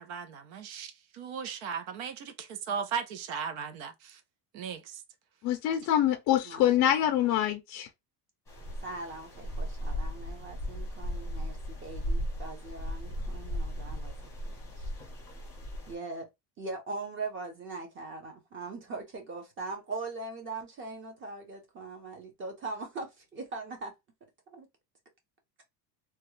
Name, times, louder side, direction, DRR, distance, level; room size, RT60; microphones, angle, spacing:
voice 1, 0.0-4.2 4.5-5.0, right 6 dB, 70° right, 0.8 m, -37 dB
voice 2, 5.4-7.9, left 11 dB, 40° left, 0.4 m, -25 dB
voice 3, 6.4-7.3 8.8-14.1 14.4-14.9 15.9-16.3 16.6-23.9 24.5-24.7, right 3 dB, 25° right, 0.8 m, -41 dB
sound 1, 8.5-15.9, equal, 5° left, 0.8 m, -36 dB
3.0 x 2.4 x 3.1 m
cardioid pair, 165°, 48 cm